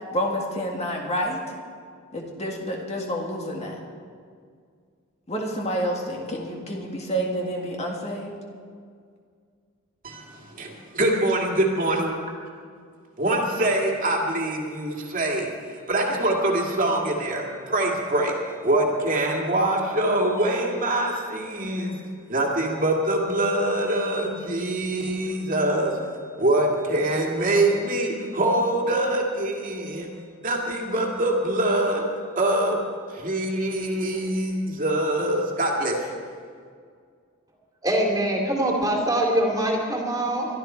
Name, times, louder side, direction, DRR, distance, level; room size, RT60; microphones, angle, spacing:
voice 1, 0.1-1.4 2.1-3.8 5.3-8.3, equal, 30° left, 0 dB, 1.9 m, -29 dB
voice 2, 10.0-12.1 13.2-18.3 18.6-26.0 26.4-30.1 30.4-32.0 32.4-32.8 33.1-36.0, right 1 dB, 40° right, -1 dB, 2.2 m, -24 dB
voice 3, 37.8-40.5, right 1 dB, 15° right, -1 dB, 2.6 m, -23 dB
23.0 x 12.5 x 4.5 m, 2.1 s
head